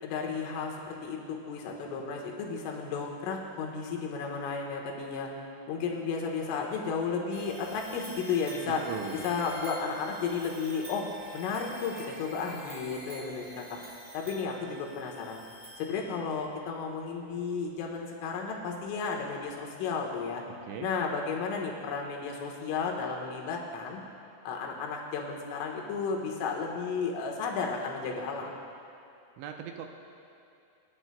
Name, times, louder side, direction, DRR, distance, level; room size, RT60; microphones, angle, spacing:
voice 1, 0.0-5.3 5.7-8.8 9.2-11.1 11.3-13.8 14.1-15.4 15.8-20.4 20.8-24.0 24.4-28.5, left 5 dB, 90° left, 0 dB, 3.8 m, -33 dB
sound 1, 7.3-16.4, right 1 dB, 20° right, 2.2 m, -47 dB
voice 2, 8.7-9.5 20.7-20.9 29.4-29.9, right 7 dB, 80° right, 3 dB, 2.9 m, -39 dB
29.0 x 11.0 x 2.2 m, 2.6 s
omnidirectional pair, 5.6 m